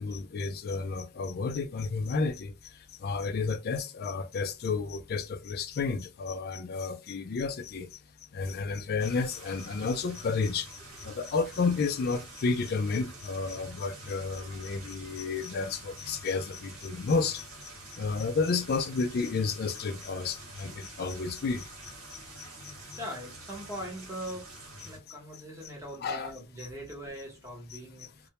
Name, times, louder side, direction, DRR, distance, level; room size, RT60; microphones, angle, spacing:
voice 1, 0.0-8.0 8.3-17.4 17.9-23.0 24.8-24.9 25.6-26.3 27.7-28.3, left 4 dB, 50° left, 0.3 m, -32 dB
sound 1, 9.0-25.0, right 1 dB, 85° right, 1.1 m, -47 dB
voice 2, 23.0-24.4 24.8-28.3, equal, 15° right, 0.8 m, -41 dB
2.2 x 2.1 x 2.8 m
head